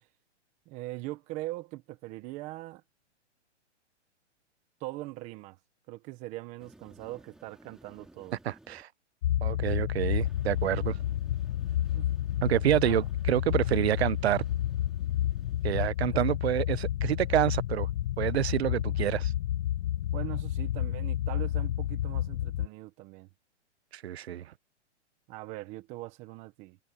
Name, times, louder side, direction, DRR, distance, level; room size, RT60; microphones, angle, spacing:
voice 1, 0.7-2.8 4.8-5.6 5.9-8.4 11.9-12.1 12.8-13.1 16.1-16.3 20.1-23.3 25.3-26.8, right 18 dB, 20° right, 1.0 m, -41 dB
sound 1, 6.6-8.8 10.2-15.7, right 1 dB, ahead, 2.3 m, -58 dB
voice 2, 8.4-8.9 9.4-11.0 12.4-14.4 15.6-17.9 18.2-19.3 23.9-24.4, right 12 dB, 60° right, 0.8 m, -28 dB
sound 2, 9.2-22.7, left 12 dB, 65° left, 0.5 m, -30 dB
hypercardioid pair, 165°, 36 cm